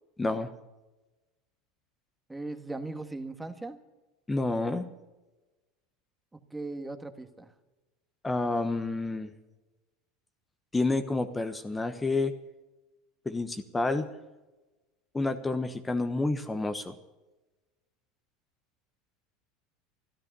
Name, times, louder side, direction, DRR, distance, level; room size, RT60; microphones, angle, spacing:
voice 1, 0.2-0.5 4.3-4.9 8.2-9.3 10.7-12.4 13.2-14.1 15.1-16.9, left 2 dB, 15° left, 9 dB, 1.1 m, -29 dB
voice 2, 2.3-3.8 6.3-7.5, right 2 dB, 10° right, 8 dB, 1.6 m, -38 dB
13.5 x 12.5 x 6.9 m, 1.1 s
supercardioid pair, 105°, 0 cm